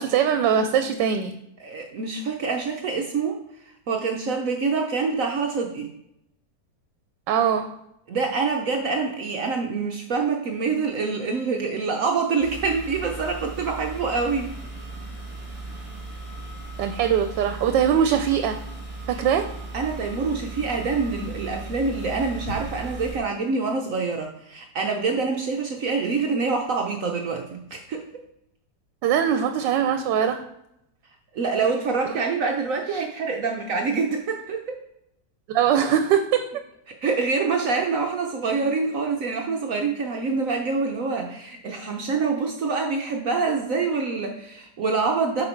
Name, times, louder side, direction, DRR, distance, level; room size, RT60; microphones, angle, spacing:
voice 1, 0.0-1.3 7.3-7.8 16.8-18.6 19.1-19.5 29.0-30.5 35.5-36.4, right 8 dB, 85° right, 8 dB, 1.2 m, -21 dB
voice 2, 1.6-3.4 3.6-5.9 8.1-14.5 19.1-19.2 19.7-28.0 31.3-34.8 36.9-45.4, right 4 dB, 60° right, 2 dB, 1.0 m, -26 dB
sound 1, 12.4-23.2, right 2 dB, 10° right, 1.9 m, -37 dB
8.3 x 4.4 x 4.4 m, 0.80 s
omnidirectional pair, 1.9 m